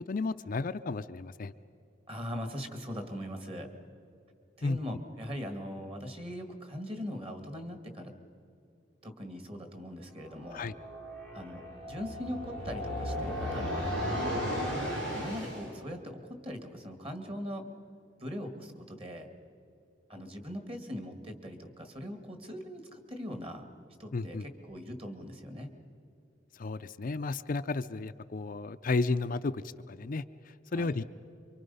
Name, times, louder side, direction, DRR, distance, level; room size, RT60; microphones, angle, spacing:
voice 1, 0.1-1.5 4.6-4.8 10.5-10.7 24.1-24.4 26.5-31.0, left 3 dB, 50° left, 10 dB, 0.5 m, -33 dB
voice 2, 2.1-3.7 4.6-8.1 9.0-10.7 11.3-14.3 15.1-17.7 18.2-19.3 20.1-23.6 24.0-25.7 30.7-31.0, equal, 30° right, 6 dB, 2.1 m, -40 dB
sound 1, 10.2-15.7, equal, 85° right, 7.7 m, -35 dB
27.0 x 24.5 x 5.5 m, 2.7 s
head